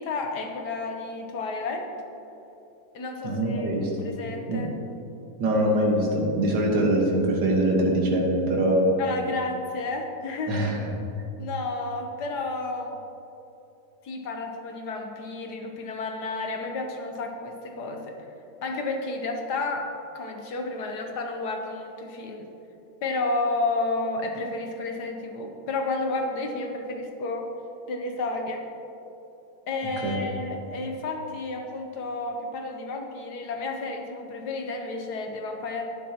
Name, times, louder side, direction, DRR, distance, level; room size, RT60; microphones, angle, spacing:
voice 1, 0.0-1.9 2.9-3.7 4.0-4.7 9.0-10.6 11.4-13.0 14.0-18.1 18.6-19.9 20.1-22.5 23.0-27.5 27.9-28.7 29.7-35.9, left 3 dB, 65° left, 3 dB, 1.4 m, -31 dB
voice 2, 3.2-3.9 4.5-4.6 5.4-8.9 10.5-10.9 30.0-30.2, right 1 dB, 70° right, -1 dB, 2.1 m, -23 dB
11.5 x 9.3 x 2.9 m, 2.9 s
omnidirectional pair, 2.1 m